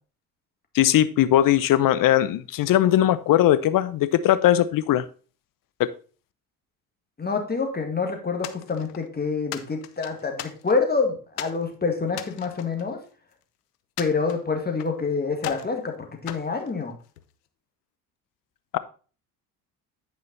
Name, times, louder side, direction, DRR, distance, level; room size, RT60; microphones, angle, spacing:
voice 1, 0.7-5.0 5.8-5.9, left 12 dB, 45° left, 14 dB, 0.7 m, -19 dB
voice 2, 7.2-13.0 14.0-15.9 16.2-16.9, left 4 dB, 20° left, 4 dB, 1.9 m, -27 dB
sound 1, 8.4-9.1 9.5-10.9 11.4-11.6 12.1-13.4 14.0-15.0 15.4-15.8 16.3-17.3, left 13 dB, 85° left, 0.7 m, -38 dB
9.3 x 5.1 x 4.0 m, 0.39 s
hypercardioid pair, 65°, 46 cm